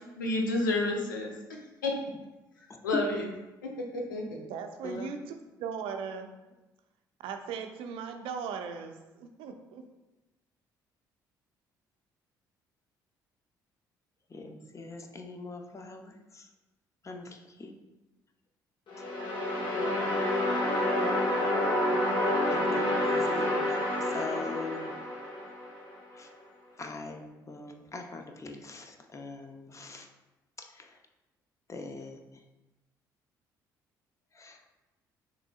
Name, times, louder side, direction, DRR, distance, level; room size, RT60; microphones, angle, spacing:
voice 1, 0.2-1.3 1.8-1.9 2.8-3.3 3.9-4.4, left 2 dB, 80° left, 1 dB, 0.6 m, -29 dB
voice 2, 4.5-5.3 5.6-6.3 7.2-9.8, right 6 dB, 60° right, 6 dB, 0.5 m, -38 dB
voice 3, 14.3-16.5 17.0-17.7 22.5-23.8 24.1-24.9 26.1-26.3 26.8-30.1 30.6-30.9 31.7-32.2 34.4-34.6, left 3 dB, 30° left, 4 dB, 0.7 m, -42 dB
sound 1, 18.9-25.9, left 1 dB, 50° left, 1.1 m, -28 dB
6.0 x 3.3 x 2.3 m, 1.1 s
figure-of-eight pair, 50°, 10 cm